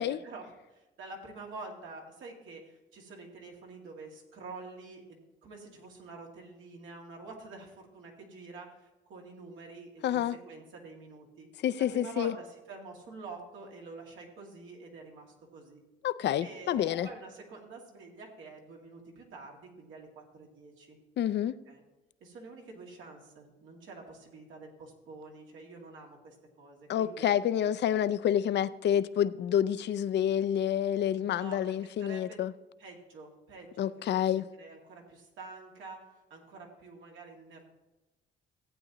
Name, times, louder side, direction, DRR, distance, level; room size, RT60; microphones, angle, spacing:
voice 1, 0.2-11.5 11.8-15.8 16.4-21.0 21.7-21.8 22.2-27.3 31.2-32.4 32.8-36.0 36.3-37.7, right 3 dB, 80° right, 2.2 m, -48 dB
voice 2, 10.0-10.4 11.6-12.3 16.0-17.1 21.2-21.5 26.9-32.5 33.8-34.5, left 10 dB, 60° left, 0.5 m, -28 dB
sound 1, 16.7-17.3, right 1 dB, 10° right, 0.9 m, -49 dB
15.0 x 8.7 x 2.9 m
cardioid pair, 90°, 20 cm